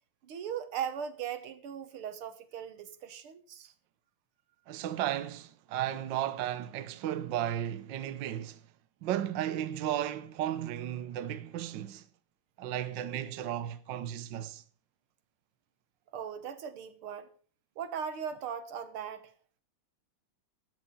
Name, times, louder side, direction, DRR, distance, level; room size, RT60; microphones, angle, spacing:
voice 1, 0.2-3.7 16.1-17.3 17.8-19.3, right 8 dB, 85° right, 2.1 m, -38 dB
voice 2, 4.7-8.6 9.0-12.1 12.6-14.6, right 11 dB, 65° right, 1.4 m, -34 dB
13.5 x 9.4 x 5.4 m
omnidirectional pair, 2.4 m